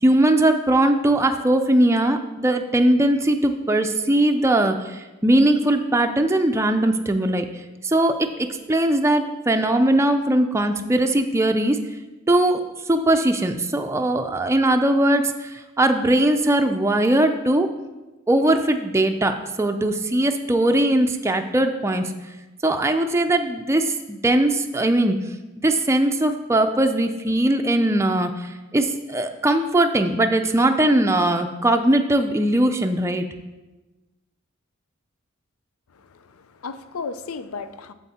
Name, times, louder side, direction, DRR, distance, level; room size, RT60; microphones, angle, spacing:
voice 1, 0.0-7.5 7.8-11.8 12.3-12.6 12.9-17.7 18.3-22.1 22.6-25.2 25.6-33.3, right 1 dB, 15° right, 5 dB, 0.4 m, -20 dB
voice 2, 35.9-37.9, left 4 dB, 90° left, 11 dB, 0.5 m, -35 dB
8.0 x 7.2 x 4.2 m, 1.1 s
head